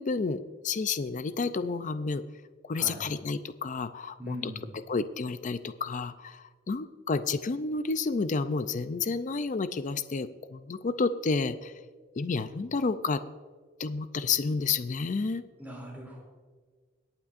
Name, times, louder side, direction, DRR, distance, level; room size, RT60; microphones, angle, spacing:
voice 1, 0.0-2.2 2.7-4.5 4.9-11.7 12.2-13.2 13.8-15.4, left 4 dB, 40° left, 12 dB, 0.4 m, -30 dB
voice 2, 4.2-4.6 15.6-16.2, equal, 10° right, -2 dB, 3.0 m, -40 dB
24.0 x 8.9 x 2.5 m, 1.5 s
head